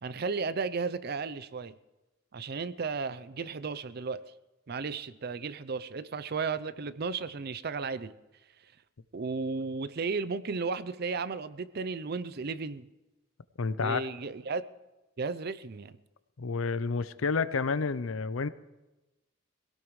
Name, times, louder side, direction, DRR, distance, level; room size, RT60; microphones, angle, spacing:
voice 1, 0.0-1.7 2.3-4.2 4.7-8.1 9.1-12.9 13.8-14.6 15.2-15.9, right 4 dB, 50° right, 16 dB, 0.5 m, -34 dB
voice 2, 13.6-14.0 16.4-18.5, left 4 dB, 80° left, 15 dB, 0.6 m, -29 dB
23.0 x 17.0 x 3.2 m, 1.0 s
head